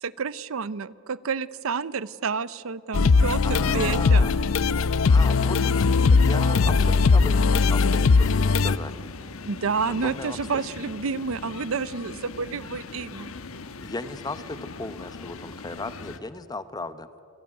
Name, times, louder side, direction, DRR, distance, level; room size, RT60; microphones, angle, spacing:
voice 1, 0.0-4.3 9.4-13.3, right 5 dB, 70° right, 18 dB, 0.6 m, -29 dB
sound 1, 2.9-8.8, left 4 dB, 70° left, 0.5 m, -19 dB
voice 2, 3.4-4.4 5.1-9.0 9.9-10.4 13.8-17.1, left 2 dB, 20° left, 12 dB, 0.9 m, -36 dB
sound 2, 5.0-16.2, left 4 dB, 90° left, 1.1 m, -40 dB
27.0 x 17.0 x 9.6 m, 2.6 s
head